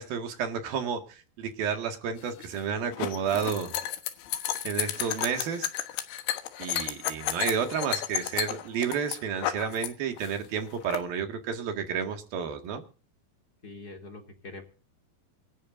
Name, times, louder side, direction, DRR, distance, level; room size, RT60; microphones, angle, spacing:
voice 1, 0.0-3.7 4.6-5.7 6.6-12.8, right 7 dB, 60° right, 5 dB, 3.6 m, -31 dB
sound 1, 2.2-9.9 10.2-11.0, left 12 dB, 90° left, 3.8 m, -32 dB
voice 2, 13.6-14.6, left 2 dB, 25° left, 3 dB, 2.7 m, -43 dB
26.5 x 12.5 x 2.7 m, 0.36 s
omnidirectional pair, 5.2 m